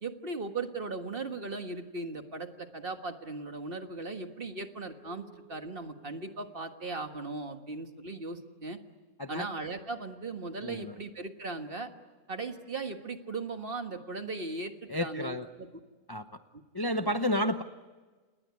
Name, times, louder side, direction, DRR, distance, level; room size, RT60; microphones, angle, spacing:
voice 1, 0.0-8.8 9.3-11.9 12.3-15.7 17.0-17.1, right 3 dB, 40° right, 6 dB, 1.7 m, -38 dB
sound 1, 4.8-7.4, right 5 dB, 70° left, 5.6 m, -61 dB
voice 2, 10.6-11.0 14.9-15.5 16.1-16.2 16.7-17.6, left 1 dB, 20° left, 7 dB, 0.6 m, -31 dB
29.0 x 20.0 x 9.6 m, 1.3 s
omnidirectional pair, 1.6 m